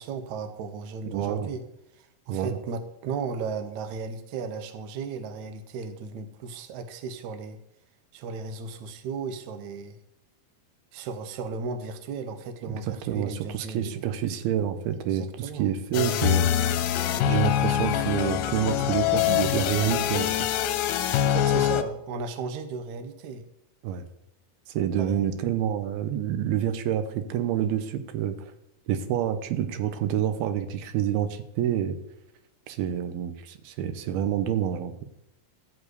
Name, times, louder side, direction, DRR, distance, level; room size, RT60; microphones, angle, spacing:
voice 1, 0.0-1.6 2.0-7.6 8.1-10.0 10.9-14.2 15.1-15.7 21.3-23.4 25.0-25.3, right 5 dB, 65° right, 8 dB, 2.0 m, -35 dB
voice 2, 1.1-1.5 2.3-2.6 12.7-16.5 17.3-20.7 23.8-24.1 24.7-28.5 28.9-32.0 32.7-34.9, right 10 dB, 90° right, 9 dB, 2.8 m, -28 dB
sound 1, 15.9-21.8, left 10 dB, 85° left, 2.5 m, -24 dB
13.5 x 4.8 x 8.2 m, 0.86 s
omnidirectional pair, 4.3 m